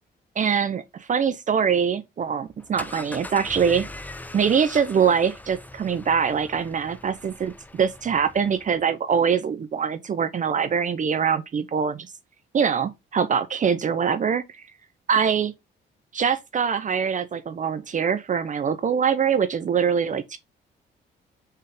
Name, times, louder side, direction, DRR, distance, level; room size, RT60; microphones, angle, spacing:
voice 1, 0.4-3.8 4.3-12.1 12.5-14.6 15.1-15.5 16.1-20.4, right 7 dB, 40° right, 0.5 m, -23 dB
sound 1, 2.5-8.8, left 2 dB, 10° left, 0.5 m, -41 dB
4.2 x 3.6 x 3.4 m
cardioid pair, 90°, 20 cm